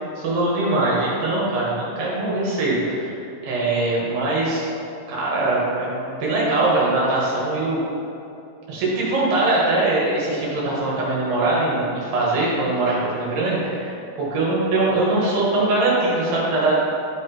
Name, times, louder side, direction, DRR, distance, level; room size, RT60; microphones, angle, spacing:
voice 1, 0.2-3.1 3.4-4.7 5.1-7.8 8.7-14.0 14.3-16.8, right 2 dB, 60° right, -6 dB, 3.3 m, -22 dB
13.0 x 4.9 x 4.4 m, 2.7 s
omnidirectional pair, 5.9 m